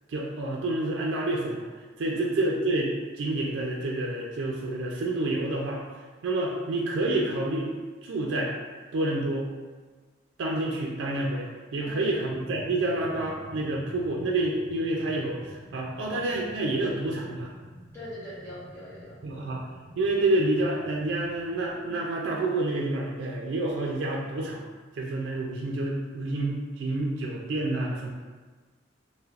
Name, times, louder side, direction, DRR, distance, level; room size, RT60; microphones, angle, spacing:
voice 1, 0.1-1.7 2.0-5.8 6.2-7.7 8.0-8.5 8.9-9.5 10.4-17.5 19.2-19.6 20.0-24.6 24.9-28.1, right 2 dB, 85° right, -2 dB, 0.4 m, -28 dB
voice 2, 11.8-12.2 17.9-19.1, left 1 dB, 15° left, -12 dB, 1.2 m, -42 dB
sound 1, 11.8-22.0, right 1 dB, 15° right, 0.5 m, -48 dB
3.2 x 2.7 x 2.4 m, 1.4 s
head